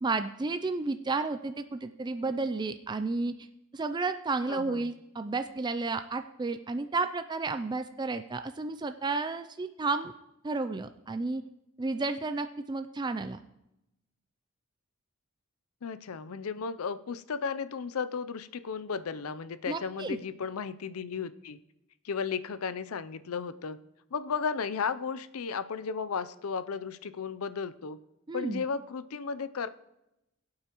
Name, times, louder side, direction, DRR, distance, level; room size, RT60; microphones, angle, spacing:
voice 1, 0.0-3.3 3.7-10.1 10.4-11.4 11.8-13.4 19.7-20.2 28.3-28.6, right 3 dB, 20° right, 9 dB, 0.4 m, -32 dB
voice 2, 4.5-4.9 15.8-21.6 22.0-23.8 24.1-28.0 28.3-29.7, left 5 dB, 80° left, 14 dB, 0.5 m, -34 dB
20.0 x 8.5 x 3.0 m, 0.88 s
head